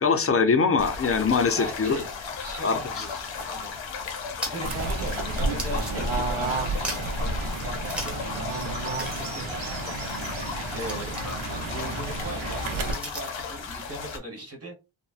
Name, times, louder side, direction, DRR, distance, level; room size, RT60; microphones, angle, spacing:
voice 1, 0.0-2.0 2.6-3.0, left 5 dB, 30° left, 0.4 m, -23 dB
sound 1, 0.8-14.2, left 5 dB, 70° left, 0.7 m, -35 dB
voice 2, 1.5-2.1 2.4-3.2 3.5-3.7 4.4-10.1 10.7-11.1 11.5-14.7, right 1 dB, 30° right, 1.2 m, -39 dB
sound 2, 3.1-6.4 6.7-7.3 7.8-8.3 8.6-8.7 9.0-13.5, equal, 5° right, 0.7 m, -40 dB
Fowl / Bird, 4.6-12.9, right 3 dB, 85° right, 0.8 m, -31 dB
3.3 x 2.1 x 2.4 m
wide cardioid pair, 170°, 47 cm